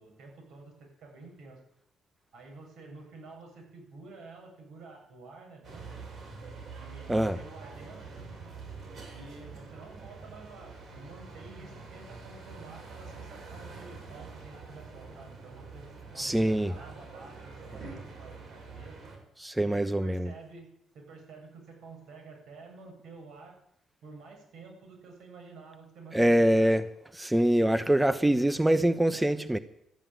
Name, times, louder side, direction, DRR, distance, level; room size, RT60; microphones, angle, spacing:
voice 1, 0.0-1.6 2.3-6.1 6.7-8.2 9.1-19.1 19.5-20.7 20.9-23.6 24.0-26.8 27.5-28.1 29.1-29.3, right 3 dB, 80° right, 1 dB, 8.0 m, -50 dB
sound 1, 5.6-19.2, right 4 dB, 65° right, 7.0 m, -45 dB
voice 2, 16.2-16.7 19.4-20.3 26.1-26.8 27.1-29.6, right 1 dB, 10° right, 12 dB, 0.8 m, -24 dB
13.5 x 10.5 x 9.2 m, 0.79 s
cardioid pair, 90°, 0 cm